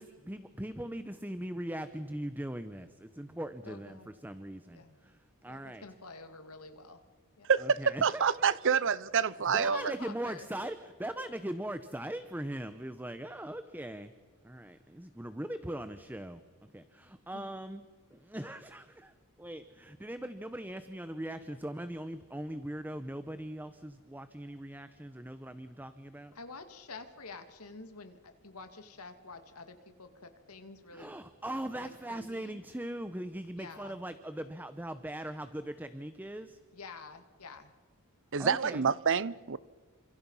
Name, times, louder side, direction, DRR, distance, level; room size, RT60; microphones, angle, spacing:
voice 1, 0.0-4.8 5.4-5.8 7.6-8.8 9.5-14.1 14.4-16.4 16.7-17.8 18.1-19.1 19.4-26.3 30.9-36.6 38.4-38.9, right 1 dB, 10° right, 0.9 m, -40 dB
voice 2, 3.6-4.1 4.7-4.9 5.5-7.0 7.4-7.5 9.7-10.5 17.3-17.5 26.3-31.2 31.8-32.6 33.6-34.0 36.7-37.7, left 4 dB, 80° left, 2.4 m, -48 dB
voice 3, 7.5-9.9 38.3-39.6, right 6 dB, 60° right, 0.8 m, -27 dB
30.0 x 26.5 x 5.7 m
head